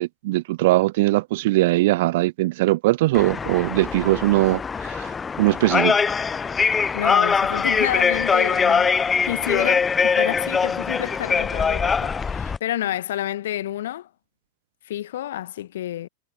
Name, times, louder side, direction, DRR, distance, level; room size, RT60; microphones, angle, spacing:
voice 1, 0.0-6.0, right 18 dB, 50° right, 0.3 m, -21 dB
sound 1, 3.1-12.6, left 5 dB, 15° left, 0.7 m, -22 dB
voice 2, 6.9-14.1 14.8-16.1, left 12 dB, 60° left, 1.4 m, -29 dB
figure-of-eight pair, 90°, 0 cm